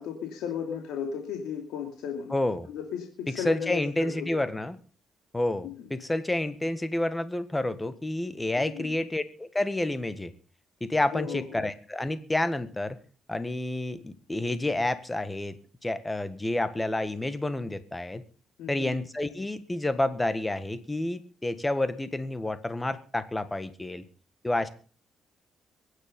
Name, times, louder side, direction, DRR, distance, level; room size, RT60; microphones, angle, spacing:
voice 1, 0.0-2.3 2.7-4.4 5.6-5.7 8.6-9.0 11.1-11.4 18.6-18.9, left 7 dB, 90° left, 3 dB, 2.8 m, -35 dB
voice 2, 2.3-2.7 3.3-4.8 5.3-10.3 10.8-13.0 13.3-15.6 15.8-18.2 18.7-24.0 24.4-24.7, left 1 dB, 15° left, 12 dB, 1.6 m, -29 dB
22.5 x 10.0 x 5.4 m, 0.39 s
cardioid pair, 90°, 0 cm